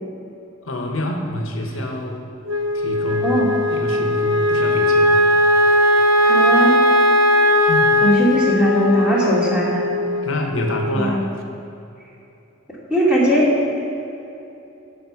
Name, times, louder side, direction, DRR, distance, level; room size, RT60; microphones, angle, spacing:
voice 1, 0.6-2.3 2.7-3.4 3.7-5.2 7.7-8.1 10.2-11.3, left 1 dB, 70° left, 2 dB, 1.1 m, -27 dB
Wind instrument woodwind instrument, 2.5-10.9, left 1 dB, 75° right, 0.9 m, -18 dB
voice 2, 6.2-6.8 8.0-9.9 10.9-11.1 12.9-13.5, right 1 dB, 5° right, -7 dB, 2.5 m, -19 dB
12.5 x 5.3 x 7.0 m, 2.9 s
head